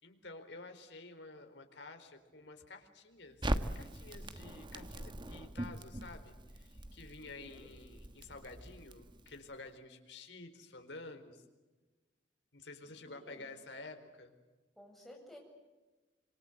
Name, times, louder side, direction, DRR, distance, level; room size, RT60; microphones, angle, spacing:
voice 1, 0.0-11.4 12.5-14.3, left 3 dB, 70° left, 6 dB, 4.3 m, -51 dB
Crackle, 3.4-9.6, right 1 dB, 25° right, 1.4 m, -41 dB
voice 2, 7.2-7.7 13.0-13.5 14.8-15.4, left 1 dB, ahead, 0 dB, 7.6 m, -55 dB
26.5 x 26.0 x 8.1 m, 1.2 s
head